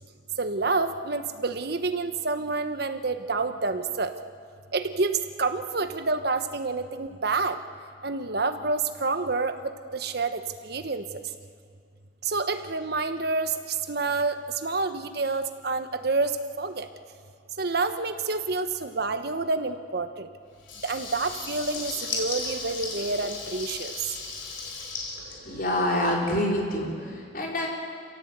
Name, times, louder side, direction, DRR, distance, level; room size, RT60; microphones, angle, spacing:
voice 1, 0.4-4.1 4.7-7.6 8.0-11.2 12.2-13.5 13.9-14.4 14.6-16.9 17.6-20.3 20.8-24.1, right 3 dB, 60° right, 9 dB, 1.2 m, -28 dB
Water tap faucet / Liquid, 20.6-26.1, left 4 dB, 85° left, 4.1 m, -36 dB
voice 2, 25.4-27.7, left 1 dB, 50° left, -2 dB, 4.4 m, -26 dB
26.5 x 16.5 x 8.1 m, 2.2 s
head